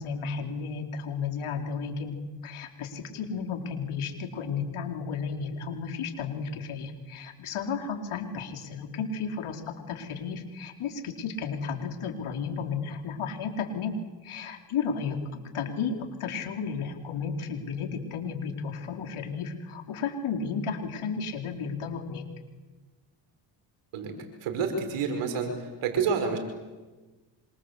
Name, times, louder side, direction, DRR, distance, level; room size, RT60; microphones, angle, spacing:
voice 1, 0.0-2.2 2.4-14.0 14.2-15.2 15.5-22.3, left 5 dB, 75° left, 4 dB, 4.5 m, -33 dB
voice 2, 24.4-26.4, right 5 dB, 80° right, 6 dB, 5.7 m, -28 dB
26.5 x 25.5 x 8.4 m, 1.3 s
supercardioid pair, 55°, 50 cm